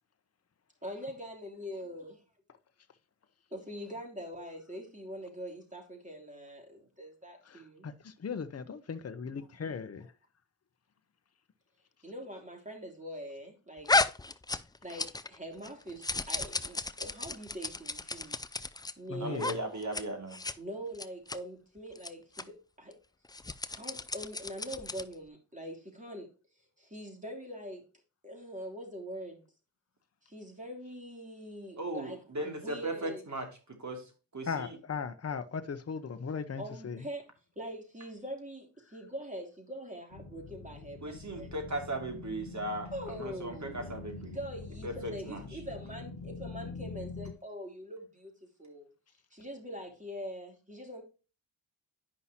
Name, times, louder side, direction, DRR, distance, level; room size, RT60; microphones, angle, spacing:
voice 1, 0.8-2.2 3.5-7.9 9.4-9.5 12.0-13.9 14.8-18.4 19.0-19.4 19.7-19.9 20.6-23.0 23.7-26.3 26.8-27.8 28.2-29.4 30.2-33.3 36.6-37.2 37.5-41.5 42.9-43.9 44.3-48.3 48.6-48.9 49.3-51.0, equal, 15° right, 3.3 m, -43 dB
voice 2, 7.5-7.9 8.2-10.1 19.1-19.6 34.5-37.1, left 5 dB, 30° left, 0.9 m, -38 dB
sound 1, 13.9-15.4 15.6-18.9 19.3-19.5 19.8-20.0 20.3-20.5 20.9-21.4 21.9-22.1 22.4-22.5 23.2-25.1, left 3 dB, 10° left, 0.4 m, -33 dB
voice 3, 19.2-20.4 31.8-33.5 33.8-34.8 41.0-44.4 44.8-45.6, right 1 dB, 35° right, 2.7 m, -37 dB
sound 2, 40.1-47.3, left 3 dB, 50° left, 1.2 m, -45 dB
10.0 x 5.4 x 2.9 m
supercardioid pair, 45°, 47 cm